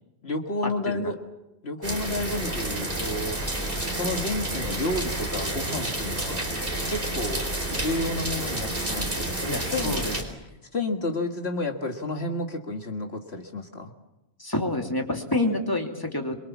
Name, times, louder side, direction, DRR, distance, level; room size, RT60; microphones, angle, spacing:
voice 1, 0.2-1.2 1.6-6.5 6.9-10.0 10.7-13.9, left 2 dB, 65° left, 3 dB, 2.1 m, -31 dB
sound 1, 1.8-10.2, right 1 dB, 50° right, 4.8 m, -30 dB
voice 2, 9.4-10.1 14.4-16.4, left 2 dB, 20° left, 2 dB, 2.8 m, -28 dB
26.5 x 23.5 x 7.2 m, 0.96 s
omnidirectional pair, 1.1 m